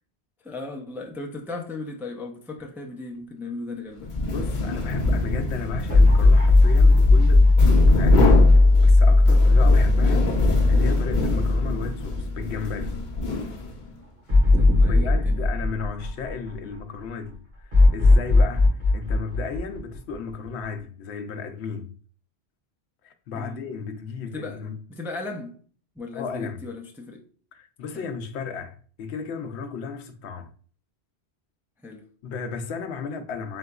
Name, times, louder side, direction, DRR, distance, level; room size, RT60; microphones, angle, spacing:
voice 1, 0.4-4.1 14.5-15.4 23.3-23.6 24.2-24.6 24.9-25.5 26.0-27.2 27.9-28.1 31.8-32.0, left 3 dB, 5° right, 0.4 m, -36 dB
sound 1, 4.0-13.9, left 2 dB, 50° left, 0.8 m, -26 dB
voice 2, 4.2-13.0 14.9-21.9 23.0-24.8 26.1-26.7 27.5-30.5 32.2-33.6, left 5 dB, 80° left, 0.9 m, -34 dB
sound 2, 5.9-12.2 12.6-12.7 14.3-16.8 17.7-20.5, left 2 dB, 55° right, 2.4 m, -17 dB
4.3 x 3.8 x 2.3 m
omnidirectional pair, 1.1 m